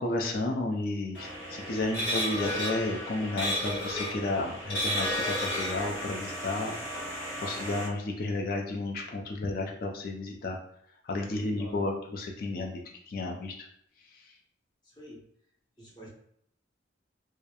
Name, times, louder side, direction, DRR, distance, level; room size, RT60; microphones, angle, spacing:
voice 1, 0.0-6.8 7.4-10.6 11.0-12.8 13.1-13.7, left 2 dB, 50° left, 1 dB, 0.3 m, -32 dB
sound 1, 1.1-7.9, equal, 80° left, 0.9 m, -33 dB
voice 2, 11.3-11.8 14.8-15.2 15.8-16.1, right 1 dB, 20° left, -5 dB, 0.7 m, -47 dB
2.3 x 2.0 x 2.8 m, 0.69 s
head